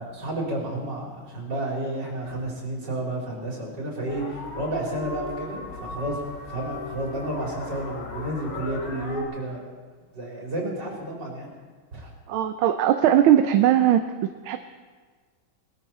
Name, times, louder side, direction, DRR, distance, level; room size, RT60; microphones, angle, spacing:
voice 1, 0.0-9.6 10.1-11.5 11.9-12.1, right 1 dB, 60° right, -3 dB, 4.4 m, -31 dB
sound 1, 4.1-9.2, left 2 dB, 80° left, 3.1 m, -37 dB
voice 2, 12.3-14.0 14.4-14.6, right 11 dB, 85° right, 8 dB, 1.5 m, -19 dB
20.0 x 13.5 x 4.3 m, 1.5 s
omnidirectional pair, 2.2 m